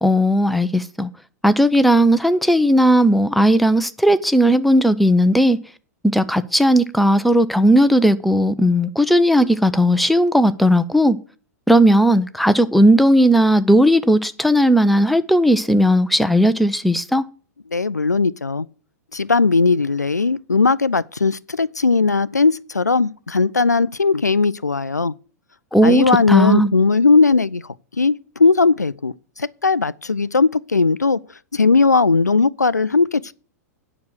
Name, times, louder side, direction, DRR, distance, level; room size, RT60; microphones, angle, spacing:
voice 1, 0.0-1.1 1.4-5.6 6.1-11.2 11.7-17.2 25.7-26.7, equal, ahead, 0.6 m, -16 dB
voice 2, 17.7-18.7 19.1-25.1 25.8-27.6 28.0-31.2 31.5-33.3, left 4 dB, 85° left, 0.4 m, -18 dB
9.5 x 5.9 x 6.3 m
figure-of-eight pair, 100°, 9 cm